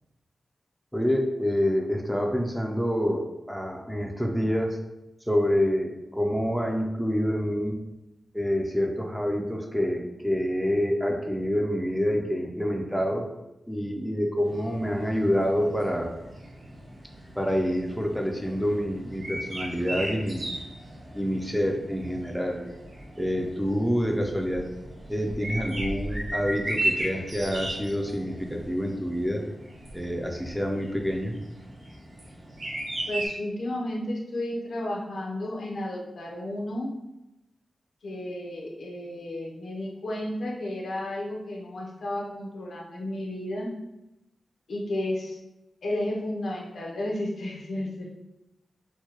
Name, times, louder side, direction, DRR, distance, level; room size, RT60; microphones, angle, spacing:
voice 1, 0.9-4.8 5.3-7.8 8.3-13.3 13.7-16.1 17.4-20.5 21.1-22.6 23.2-24.7 25.1-29.4 29.9-31.4, equal, ahead, 1 dB, 0.4 m, -27 dB
sound 1, 14.4-33.3, right 1 dB, 55° right, 1.2 m, -37 dB
voice 2, 33.1-36.9 38.0-43.7 44.7-45.4 45.8-48.1, left 1 dB, 75° left, -1 dB, 0.7 m, -32 dB
4.5 x 2.2 x 2.8 m, 0.92 s
wide cardioid pair, 180°, 0 cm